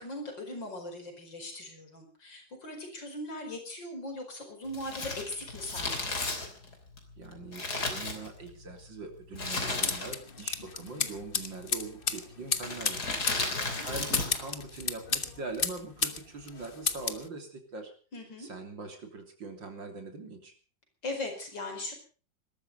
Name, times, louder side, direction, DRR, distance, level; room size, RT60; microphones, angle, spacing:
voice 1, 0.0-6.2 13.4-13.9 18.1-18.5 21.0-21.9, left 2 dB, 75° left, 4 dB, 5.6 m, -39 dB
Crumpling crinkling, 4.7-8.7 9.3-10.4 10.6-10.7 11.6-11.9 12.6-14.5 14.7-14.8, left 3 dB, 55° left, 3.8 m, -34 dB
voice 2, 7.2-13.1 13.8-17.9 18.4-20.5, right 3 dB, 75° right, 4 dB, 4.0 m, -42 dB
sound 1, 9.8-16.2 16.5-17.2, left 5 dB, 35° left, 1.1 m, -32 dB
20.0 x 13.0 x 5.4 m, 0.39 s
omnidirectional pair, 2.0 m